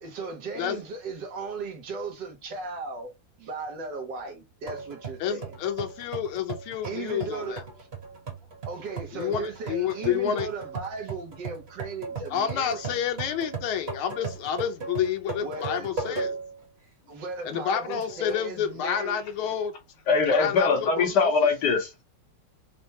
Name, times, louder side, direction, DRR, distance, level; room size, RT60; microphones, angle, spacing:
voice 1, 0.0-3.1 3.4-5.5 6.8-7.9 8.7-12.8 15.4-16.2 17.1-19.2, right 3 dB, 65° right, 1.4 m, -36 dB
sound 1, 4.7-16.6 17.1-17.2 17.9-18.5, right 4 dB, 35° right, 1.3 m, -38 dB
voice 2, 5.2-7.6 9.1-10.5 12.3-16.3 17.5-19.7 20.3-21.1, left 9 dB, 85° left, 1.6 m, -29 dB
voice 3, 20.1-22.0, left 4 dB, 60° left, 1.4 m, -22 dB
4.4 x 2.1 x 2.7 m
omnidirectional pair, 2.3 m